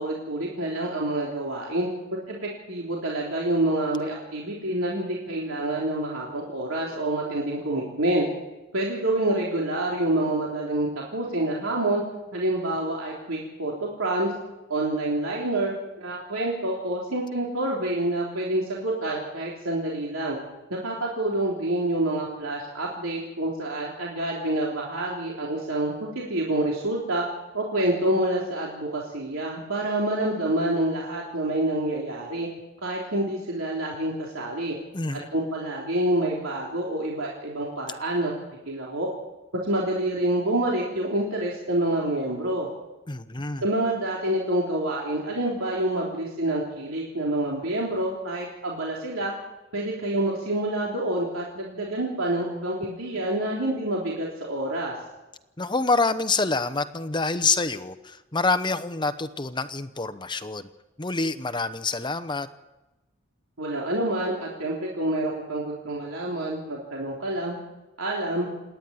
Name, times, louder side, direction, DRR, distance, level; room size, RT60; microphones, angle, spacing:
voice 1, 0.0-1.9 2.3-8.3 8.7-12.0 12.3-14.3 14.7-20.4 20.7-27.2 27.5-32.5 32.8-34.8 35.1-38.3 38.7-39.1 39.6-42.7 43.6-49.3 49.7-54.9 63.6-67.6 68.0-68.5, right 1 dB, 80° right, -3 dB, 3.5 m, -27 dB
voice 2, 34.9-35.3 43.1-43.6 55.6-60.7 61.0-62.5, left 3 dB, 20° left, 12 dB, 0.9 m, -26 dB
27.5 x 10.5 x 9.4 m, 1.1 s
head